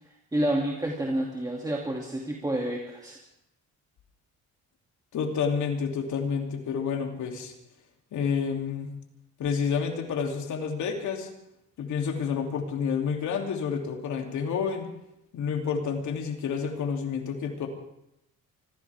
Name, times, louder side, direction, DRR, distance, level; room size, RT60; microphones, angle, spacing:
voice 1, 0.3-3.2, right 1 dB, 10° right, -1 dB, 2.6 m, -29 dB
voice 2, 5.1-7.5 8.1-8.9 9.4-11.3 11.8-14.9 15.3-17.7, left 6 dB, 75° left, 2 dB, 3.0 m, -29 dB
25.0 x 16.0 x 3.6 m, 0.81 s
cardioid pair, 90°, 30 cm